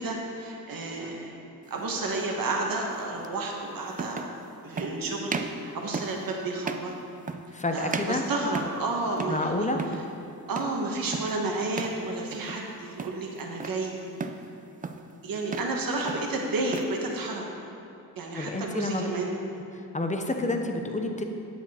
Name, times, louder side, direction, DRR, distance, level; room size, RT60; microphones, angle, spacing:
voice 1, 0.0-1.3 1.7-4.2 4.6-6.9 7.7-9.7 10.5-14.0 15.2-17.5 18.2-19.3, right 2 dB, 65° right, 0 dB, 1.3 m, -31 dB
sound 1, 1.7-1.9 3.2-3.3 3.9-4.4 4.8-5.0 5.3-5.6 5.9-6.2 6.6-6.9 7.3-7.6 7.9-8.9 9.2-9.5 9.7-10.1 10.6-10.8 11.1-11.4 11.7-12.0 12.3-12.7 13.0-13.8 14.2-14.5 14.8-15.1 15.4-15.8 16.1-17.0, right 4 dB, 25° right, 0.4 m, -35 dB
voice 2, 7.5-8.2 9.3-9.8 18.4-19.1 19.9-21.2, left 2 dB, 20° left, 4 dB, 0.7 m, -29 dB
9.9 x 8.7 x 4.3 m, 2.7 s
wide cardioid pair, 150°, 37 cm